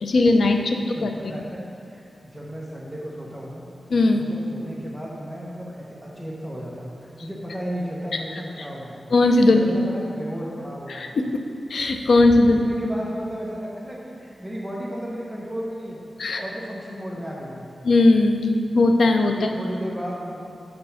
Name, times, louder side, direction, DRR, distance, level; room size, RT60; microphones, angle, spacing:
voice 1, 0.0-1.1 3.9-4.2 9.1-9.7 10.9-11.1 11.7-12.6 16.2-16.4 17.8-19.5, left 2 dB, 75° left, 4 dB, 0.6 m, -18 dB
voice 2, 0.8-1.6 1.9-3.6 4.1-9.0 9.4-11.1 12.4-16.0 16.2-17.7 19.3-20.4, equal, ahead, -4 dB, 0.9 m, -34 dB
7.7 x 4.6 x 5.7 m, 2.6 s
wide cardioid pair, 120°, 0 cm